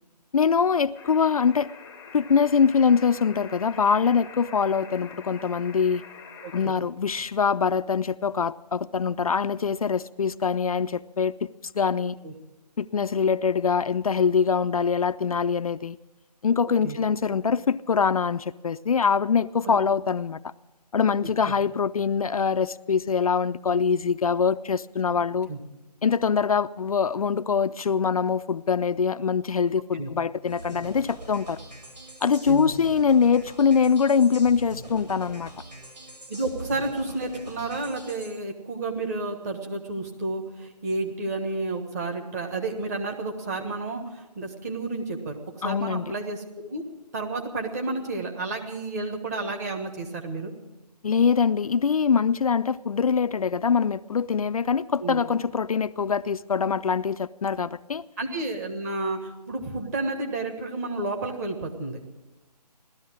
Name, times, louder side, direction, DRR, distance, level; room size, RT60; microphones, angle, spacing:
voice 1, 0.3-1.7 2.1-6.0 6.5-11.5 11.7-12.2 12.8-16.0 16.4-20.5 20.9-25.5 26.0-31.6 32.2-35.5 45.6-46.0 51.0-58.0, left 6 dB, 60° left, 0.4 m, -23 dB
sound 1, 0.9-6.7, left 6 dB, 10° left, 0.7 m, -45 dB
voice 2, 12.0-12.3 16.8-17.0 19.6-19.8 21.2-21.5 25.2-25.6 29.9-30.1 32.5-32.7 36.3-46.8 47.1-50.5 55.0-55.2 58.2-62.0, right 2 dB, 25° right, 1.5 m, -31 dB
sound 2, 30.5-38.3, equal, 85° right, 7.2 m, -42 dB
17.0 x 13.0 x 6.3 m
figure-of-eight pair, 165°, 21 cm